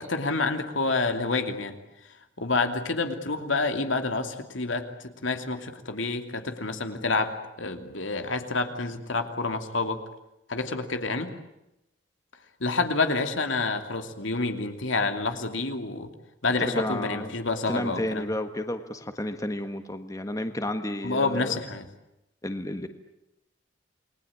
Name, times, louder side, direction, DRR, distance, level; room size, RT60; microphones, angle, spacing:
voice 1, 0.0-1.7 2.4-10.0 10.5-11.3 12.6-16.1 16.4-18.3 21.0-21.9, left 3 dB, 80° left, 7 dB, 2.8 m, -28 dB
voice 2, 16.6-17.3 17.7-21.6 22.4-22.9, left 1 dB, 15° left, 8 dB, 1.6 m, -31 dB
29.0 x 21.0 x 8.7 m, 0.90 s
head